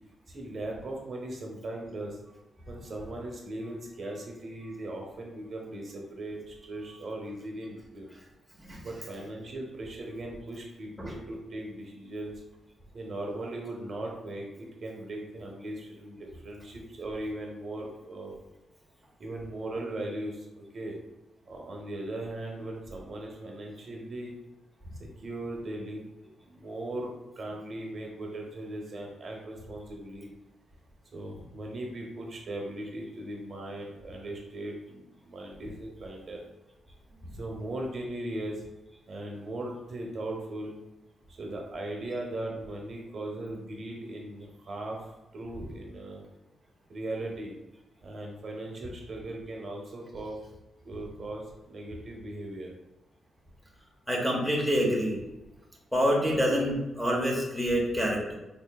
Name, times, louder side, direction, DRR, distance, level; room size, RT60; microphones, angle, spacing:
voice 1, 0.3-2.2 2.7-8.1 8.8-12.4 12.9-18.3 19.2-21.0 21.5-24.3 25.0-30.3 31.1-36.4 37.3-38.6 39.1-40.7 41.3-45.1 45.3-46.2 46.9-47.5 48.0-50.4 50.8-52.7, right 1 dB, 40° right, 0 dB, 0.7 m, -38 dB
voice 2, 54.1-55.2 55.9-58.3, equal, 5° left, -2 dB, 0.7 m, -27 dB
4.1 x 3.1 x 2.2 m, 0.98 s
wide cardioid pair, 145°, 0 cm